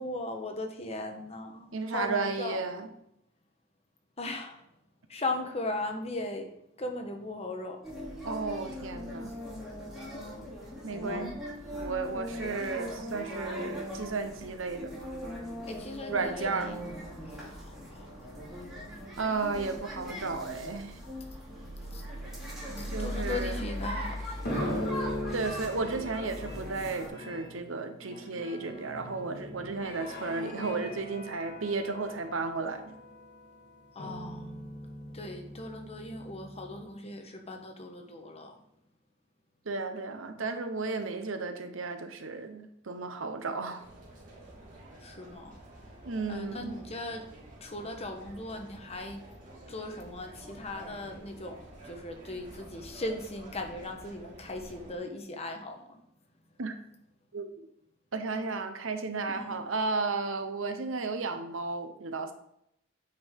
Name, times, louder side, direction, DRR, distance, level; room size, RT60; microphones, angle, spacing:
voice 1, 0.0-2.6 4.2-4.6 5.1-6.5 6.8-7.8 10.1-10.5 10.8-11.4 15.7-16.9 17.2-18.1 21.9-22.0 22.3-24.4 33.9-34.5 35.1-38.6 40.3-40.4 45.0-45.6 46.3-47.3 47.6-49.2 49.7-56.0 59.3-59.6, left 2 dB, 30° left, 4 dB, 1.1 m, -38 dB
voice 2, 1.7-2.9 8.2-9.3 10.8-11.3 11.7-14.9 16.1-16.8 19.2-21.0 22.9-23.7 25.3-33.0 39.6-43.8 46.0-46.7 56.6-56.8 57.3-57.5 58.1-62.3, right 3 dB, 80° right, 7 dB, 0.9 m, -33 dB
sound 1, 7.8-27.1, equal, 5° right, 3.1 m, -39 dB
sound 2, 23.6-24.2 24.4-36.8, left 1 dB, 55° left, 1.7 m, -40 dB
sound 3, 43.8-54.9, right 1 dB, 40° right, 2.5 m, -50 dB
8.8 x 5.4 x 3.7 m, 0.76 s
head